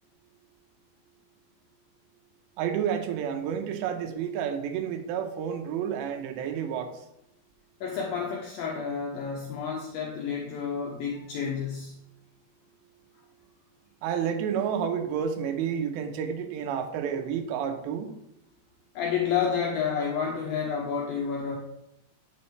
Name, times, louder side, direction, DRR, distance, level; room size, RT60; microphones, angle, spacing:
voice 1, 2.6-6.9 14.0-18.1, right 8 dB, 85° right, 6 dB, 3.2 m, -30 dB
voice 2, 7.8-12.0 19.0-21.6, left 6 dB, 75° left, 0 dB, 2.3 m, -30 dB
11.5 x 6.7 x 3.3 m, 0.82 s
omnidirectional pair, 4.9 m